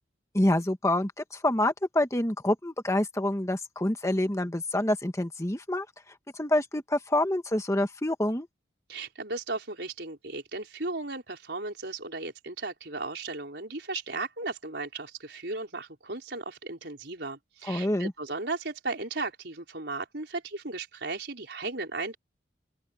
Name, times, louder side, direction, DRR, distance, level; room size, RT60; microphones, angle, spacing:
voice 1, 0.3-5.9 6.3-8.5 17.7-18.1, left 1 dB, 15° left, 1.4 m, -27 dB
voice 2, 8.9-22.2, right 3 dB, 65° right, 4.8 m, -36 dB
open air
head